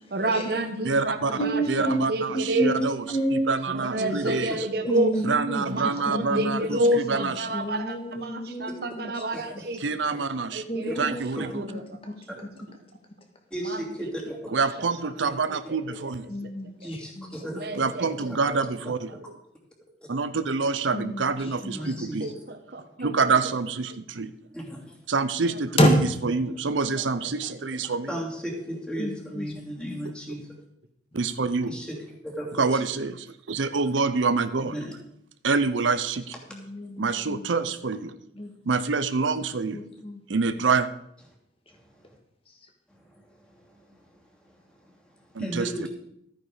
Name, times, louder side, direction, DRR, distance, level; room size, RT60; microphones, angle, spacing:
voice 1, 0.1-2.7 3.7-5.1 5.7-9.8 10.5-11.1 11.4-12.2 13.6-13.8 15.7-15.8 17.5-18.3 21.7-21.9 22.2-23.1 25.5-25.6 27.0-27.1 27.5-27.6, right 1 dB, 55° right, 7 dB, 1.3 m, -29 dB
voice 2, 0.8-3.0 3.3-4.7 5.2-7.6 9.8-10.6 11.0-11.6 14.5-16.2 17.8-19.3 20.1-22.3 23.0-24.3 25.1-28.1 31.1-31.8 32.6-34.8 35.4-36.2 37.0-38.1 38.7-39.8 40.3-40.9 45.3-45.9, right 4 dB, 90° right, 11 dB, 0.7 m, -27 dB
voice 3, 1.4-3.5 4.9-5.7 6.1-9.2 10.7-11.3 12.1-12.2 16.3-17.3 20.9-21.2 21.6-21.8 25.8-25.9 29.0-29.5 29.9-30.0 36.5-37.5 38.4-38.5 39.7-40.2, equal, 30° left, 3 dB, 2.0 m, -29 dB
voice 4, 3.9-4.4 6.6-6.7 9.3-9.7 10.1-10.3 10.9-11.0 11.4-11.5 13.5-14.5 15.2-15.3 15.9-16.0 16.8-17.9 18.5-18.6 21.7-22.4 24.5-25.0 28.1-30.5 31.7-32.8 34.6-34.9 41.7-42.1 42.9-45.9, equal, 5° left, -2 dB, 2.8 m, -36 dB
13.5 x 9.2 x 5.0 m, 0.75 s
head